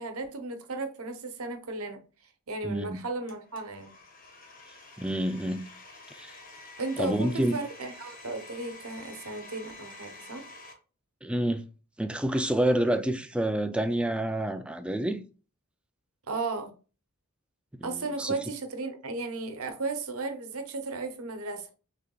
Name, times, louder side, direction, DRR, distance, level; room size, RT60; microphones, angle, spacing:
voice 1, 0.0-2.0 2.5-3.9 6.8-10.5 16.3-16.7 17.8-21.7, right 3 dB, 85° right, 0.9 m, -35 dB
voice 2, 2.6-3.0 5.0-5.6 6.1-6.4 7.0-7.6 11.2-11.6 12.0-15.2 17.7-18.4, right 1 dB, 5° right, 0.3 m, -28 dB
Domestic sounds home sounds, 3.3-10.7, left 3 dB, 40° left, 1.1 m, -49 dB
6.6 x 3.4 x 2.3 m
head